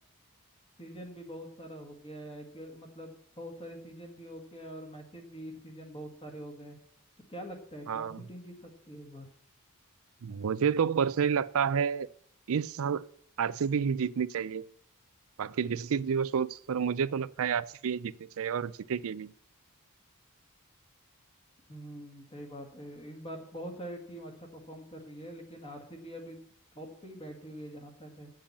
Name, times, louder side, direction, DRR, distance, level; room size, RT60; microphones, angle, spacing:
voice 1, 0.8-6.8 7.3-9.3 21.7-26.4 26.8-28.3, equal, 25° left, 1.9 m, -44 dB
voice 2, 7.9-8.2 10.2-12.1 12.5-13.0 13.4-14.7 15.4-19.3, right 7 dB, 65° right, 0.4 m, -30 dB
8.8 x 7.4 x 7.2 m
head